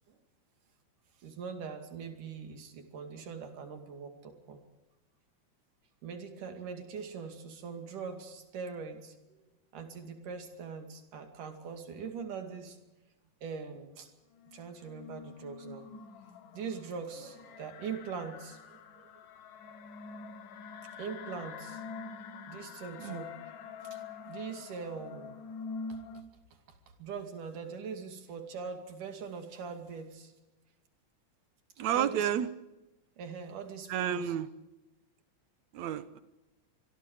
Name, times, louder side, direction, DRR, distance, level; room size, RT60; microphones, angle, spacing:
voice 1, 1.2-4.6 6.0-9.4 9.7-12.8 13.4-14.1 14.5-15.9 16.5-19.1 21.0-21.8 22.5-23.4 23.9-24.0 24.3-25.4 25.9-26.0 27.0-30.3 31.9-32.3 33.2-34.3, right 5 dB, 90° right, 5 dB, 4.0 m, -42 dB
sound 1, 14.3-26.2, left 5 dB, 90° left, 3.1 m, -46 dB
voice 2, 31.8-32.5 33.9-34.5 35.7-36.2, right 10 dB, 70° right, 13 dB, 2.2 m, -31 dB
25.5 x 22.0 x 5.0 m, 1.0 s
omnidirectional pair, 3.6 m